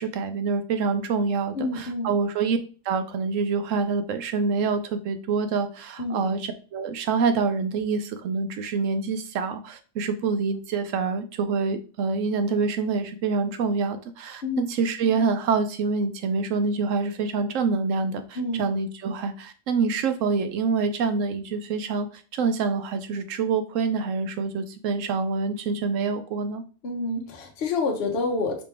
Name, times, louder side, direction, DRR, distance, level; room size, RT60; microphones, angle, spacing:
voice 1, 0.0-2.6 2.9-26.6, right 4 dB, 70° right, 9 dB, 0.9 m, -26 dB
voice 2, 1.5-2.1 6.0-6.3 14.4-14.7 18.4-18.6 26.8-28.6, left 3 dB, 50° left, 2 dB, 1.0 m, -28 dB
5.1 x 3.0 x 3.4 m, 0.38 s
omnidirectional pair, 1.4 m